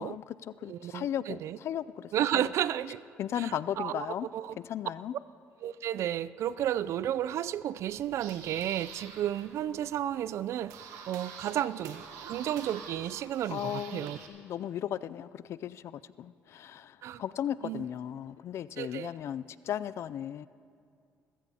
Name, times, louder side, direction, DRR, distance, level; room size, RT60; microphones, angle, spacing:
voice 1, 0.0-2.5 3.2-4.3 4.6-5.1 13.5-20.5, left 10 dB, 60° left, 17 dB, 0.3 m, -36 dB
voice 2, 0.7-1.6 2.1-3.0 3.4-4.1 4.3-4.6 5.6-10.7 11.1-14.2 17.0-17.2 17.6-17.8 18.8-19.1, right 11 dB, 65° right, 17 dB, 0.3 m, -32 dB
sound 1, 7.8-14.3, right 6 dB, 90° right, 1.1 m, -47 dB
21.0 x 15.0 x 2.8 m, 2.4 s
cardioid pair, 85°, 5 cm